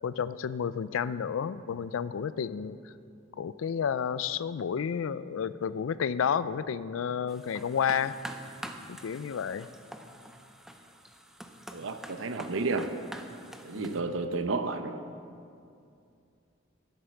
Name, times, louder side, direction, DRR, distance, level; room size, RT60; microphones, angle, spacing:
voice 1, 0.0-2.9 3.4-8.2 8.9-9.7 13.7-14.1, left 7 dB, 85° left, 16 dB, 0.4 m, -31 dB
sound 1, 7.3-14.0, equal, ahead, 0.5 m, -46 dB
voice 2, 11.7-12.9 13.6-15.0, right 3 dB, 80° right, 9 dB, 0.7 m, -31 dB
10.0 x 7.7 x 7.0 m, 2.5 s
head